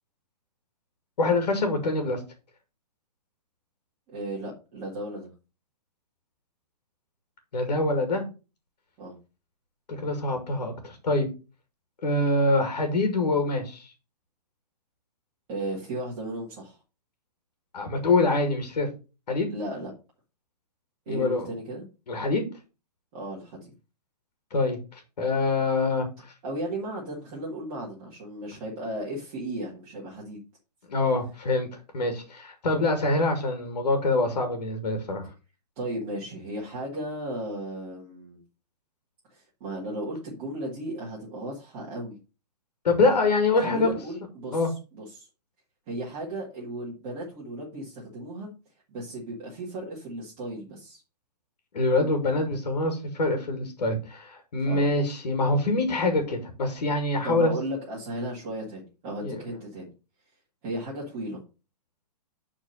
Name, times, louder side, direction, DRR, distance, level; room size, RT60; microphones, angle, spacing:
voice 1, 1.2-2.2 7.5-8.2 10.0-11.3 12.0-13.9 17.7-18.9 19.3-19.5 21.1-21.5 22.1-22.4 24.5-26.3 30.9-31.7 31.9-35.3 42.8-43.9 44.5-44.7 51.7-57.5 59.2-59.4, left 2 dB, 75° left, 5 dB, 2.4 m, -25 dB
voice 2, 4.1-5.3 9.0-9.2 15.5-16.8 19.5-19.9 21.1-21.8 23.1-23.7 26.4-30.4 35.8-38.4 39.3-42.2 43.6-45.3 45.9-48.5 48.9-51.0 54.6-54.9 57.2-59.9 60.6-61.4, right 1 dB, 20° right, -5 dB, 1.8 m, -35 dB
7.4 x 4.4 x 6.5 m, 0.32 s
hypercardioid pair, 180°, 21 cm